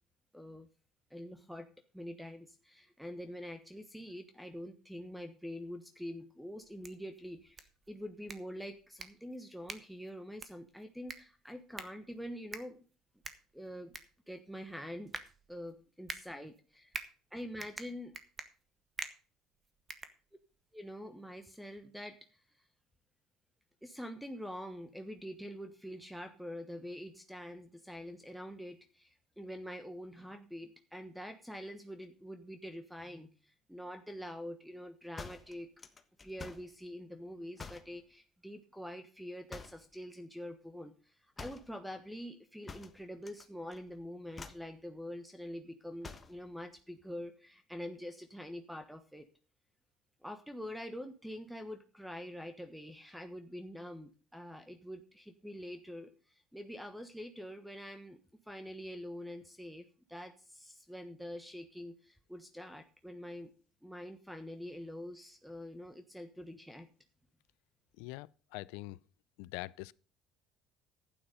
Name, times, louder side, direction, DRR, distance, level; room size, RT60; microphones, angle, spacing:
voice 1, 0.3-0.7 1.1-1.7 1.9-12.8 13.5-14.0 14.3-15.2 15.5-16.9 17.3-18.2 20.7-22.7 23.8-35.7 36.2-49.3 50.2-63.5 63.8-66.9, equal, ahead, 1.2 m, -45 dB
sound 1, 6.6-20.7, right 4 dB, 25° right, 1.6 m, -48 dB
sound 2, 35.2-36.7 37.6-38.0 39.5-39.9 41.4-41.7 42.7-43.4 43.7-44.0 44.3-44.7 46.0-46.4, left 4 dB, 20° left, 1.3 m, -48 dB
voice 2, 68.0-69.0 69.4-69.9, left 21 dB, 85° left, 0.5 m, -43 dB
11.5 x 9.2 x 5.0 m
cardioid pair, 115°, 0 cm